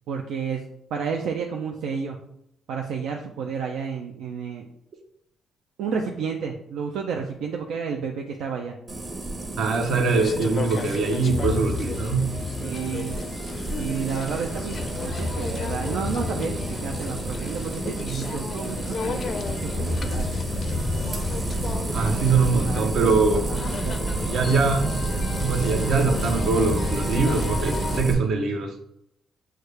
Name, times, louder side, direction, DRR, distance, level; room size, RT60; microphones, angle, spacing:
voice 1, 0.1-2.3 2.7-4.7 5.8-8.8 12.6-13.2 13.8-20.3 22.5-24.0, right 6 dB, 85° right, 1 dB, 0.4 m, -31 dB
sound 1, 8.9-28.1, right 2 dB, 35° right, 0.9 m, -30 dB
voice 2, 9.6-12.4 21.9-23.5 24.3-28.7, right 4 dB, 70° right, 4 dB, 0.8 m, -23 dB
sound 2, 10.1-28.0, left 4 dB, 45° left, 0.4 m, -33 dB
6.3 x 2.3 x 3.3 m, 0.76 s
cardioid pair, 90°, 0 cm